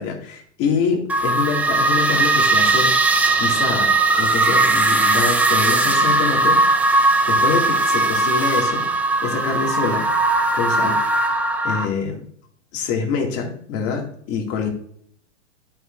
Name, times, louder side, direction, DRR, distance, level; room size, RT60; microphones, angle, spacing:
voice 1, 0.0-6.6 7.3-8.9 9.2-10.1 10.5-11.0 11.6-12.2 12.7-14.7, left 5 dB, 40° left, 2 dB, 2.3 m, -25 dB
sound 1, 1.1-11.9, right 2 dB, 5° right, 0.7 m, -18 dB
11.0 x 6.4 x 2.6 m, 0.63 s
hypercardioid pair, 120°, 37 cm